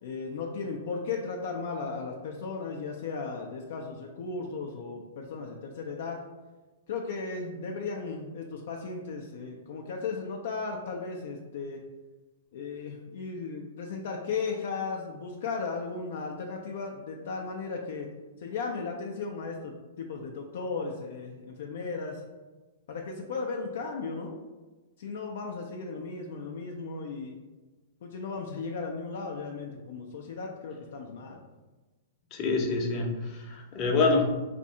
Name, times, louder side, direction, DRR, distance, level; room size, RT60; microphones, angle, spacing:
voice 1, 0.0-6.2 6.9-11.8 12.5-18.1 18.4-22.2 22.9-24.4 25.0-27.4 28.0-31.4, left 4 dB, 65° left, 0 dB, 0.4 m, -36 dB
voice 2, 32.3-34.2, left 3 dB, 35° left, 1 dB, 0.7 m, -26 dB
2.6 x 2.6 x 4.2 m, 1.2 s
hypercardioid pair, 120°, 0 cm